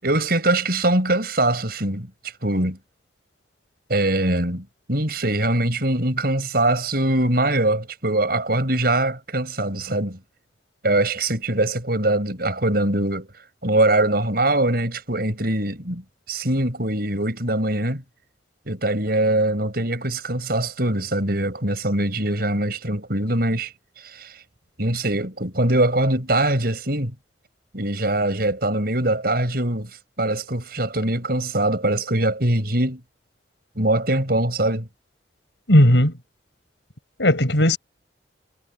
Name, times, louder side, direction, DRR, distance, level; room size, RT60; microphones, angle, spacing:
voice 1, 0.0-2.1 2.4-2.8 3.9-10.2 10.8-13.3 13.6-18.0 18.7-23.7 24.0-24.4 24.8-27.1 27.7-29.9 30.2-33.0 33.8-34.9, right 1 dB, 55° right, 6.4 m, -22 dB
voice 2, 35.7-36.1 37.2-37.8, left 1 dB, 75° left, 6.2 m, -15 dB
head